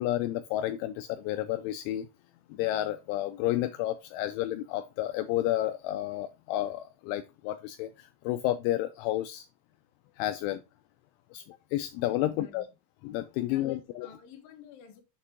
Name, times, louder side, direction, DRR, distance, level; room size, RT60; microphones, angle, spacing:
voice 1, 0.0-2.1 2.5-9.5 10.2-10.6 11.3-11.4 11.7-12.7 13.0-14.1, left 14 dB, 85° left, 2.8 m, -31 dB
voice 2, 11.5-12.7 13.5-15.0, left 8 dB, 60° left, 2.6 m, -53 dB
7.2 x 6.6 x 3.6 m
omnidirectional pair, 5.7 m